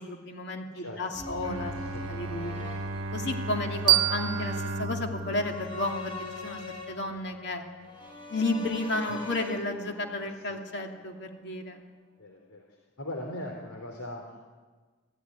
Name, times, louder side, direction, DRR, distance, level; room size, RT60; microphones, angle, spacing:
voice 1, 0.0-2.5 3.1-7.6 8.3-11.8, left 2 dB, 50° left, 3 dB, 2.5 m, -32 dB
sound 1, 1.1-11.3 11.6-11.7, left 2 dB, 20° left, 4.2 m, -43 dB
Bowed string instrument, 1.4-6.7, right 1 dB, 65° right, 1.1 m, -36 dB
sound 2, 3.9-6.7, right 16 dB, 20° right, 1.1 m, -29 dB
voice 2, 12.2-14.2, left 1 dB, 80° left, 2 dB, 3.3 m, -40 dB
27.0 x 16.0 x 9.6 m, 1.4 s
head